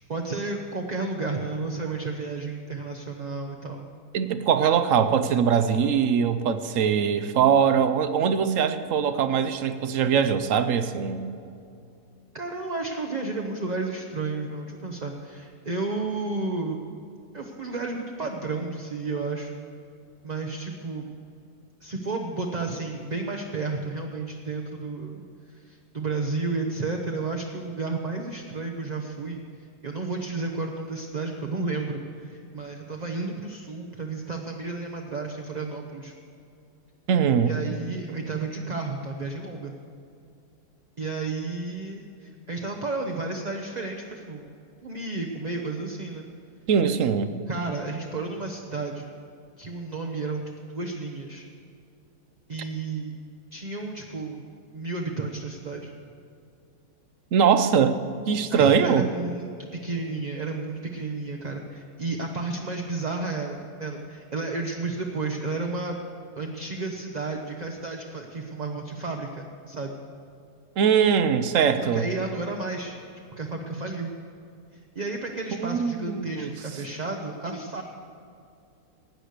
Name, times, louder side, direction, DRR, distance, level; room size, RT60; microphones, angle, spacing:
voice 1, 0.1-3.9 12.3-16.8 17.3-19.5 20.2-21.1 21.8-29.4 29.8-36.1 37.4-39.7 41.0-44.5 44.8-46.3 47.5-49.1 49.6-50.4 50.7-51.5 52.5-53.1 53.5-54.4 54.7-55.9 58.5-66.0 66.4-69.9 71.8-73.0 73.4-74.1 74.9-77.8, right 3 dB, 35° right, 2 dB, 0.8 m, -32 dB
voice 2, 4.1-11.2 37.1-37.5 46.7-47.3 57.3-58.0 58.3-59.1 70.8-72.1 75.6-76.5, right 7 dB, 65° right, 11 dB, 1.0 m, -22 dB
16.0 x 9.8 x 6.6 m, 2.5 s
omnidirectional pair, 1.7 m